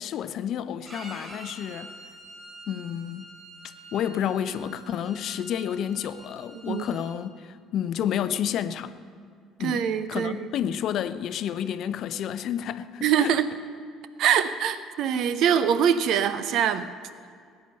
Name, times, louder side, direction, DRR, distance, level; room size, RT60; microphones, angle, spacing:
voice 1, 0.0-1.9 2.7-3.3 3.9-8.9 9.6-13.3, left 9 dB, 50° left, 0.6 m, -30 dB
Bowed string instrument, 0.9-7.1, right 2 dB, 30° right, 5.1 m, -46 dB
voice 2, 9.6-10.5 13.0-13.5 14.2-16.9, right 8 dB, 55° right, 0.7 m, -23 dB
20.0 x 9.1 x 6.6 m
figure-of-eight pair, 55°, 0 cm